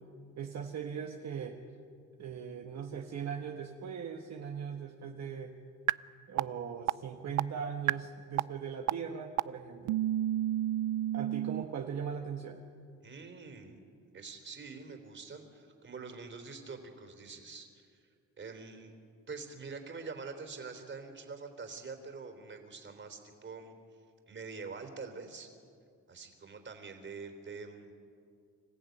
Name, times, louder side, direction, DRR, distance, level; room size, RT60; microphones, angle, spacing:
voice 1, 0.4-1.6 2.2-5.5 6.3-10.0 11.1-12.6, right 7 dB, 60° right, 2 dB, 1.5 m, -39 dB
sound 1, 5.9-6.0 6.4-6.5 6.9-7.0 7.4-7.5 7.9-8.0 8.4-8.5 8.9-9.0 9.4-9.5 9.9-11.6, right 14 dB, 80° right, 0.5 m, -29 dB
voice 2, 13.0-13.8 14.1-18.1 18.4-18.9 19.3-23.7 24.3-25.5 26.1-27.9, right 4 dB, 40° right, 6 dB, 3.6 m, -45 dB
26.5 x 14.5 x 9.4 m, 2.3 s
cardioid pair, 90°, 30 cm